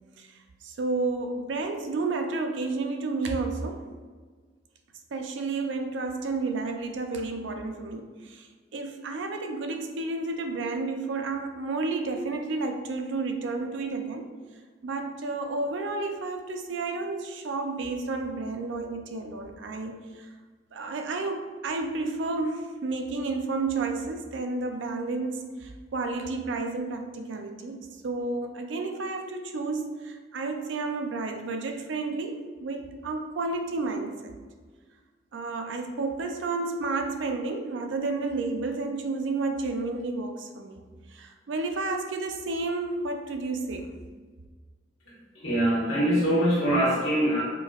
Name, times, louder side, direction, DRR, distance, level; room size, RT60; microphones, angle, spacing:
voice 1, 0.2-3.8 5.1-14.3 14.8-20.3 20.7-34.4 35.3-43.9, right 3 dB, 70° right, 5 dB, 0.4 m, -31 dB
voice 2, 45.4-47.4, right 1 dB, 90° left, -7 dB, 1.4 m, -23 dB
5.2 x 2.6 x 2.3 m, 1.5 s
head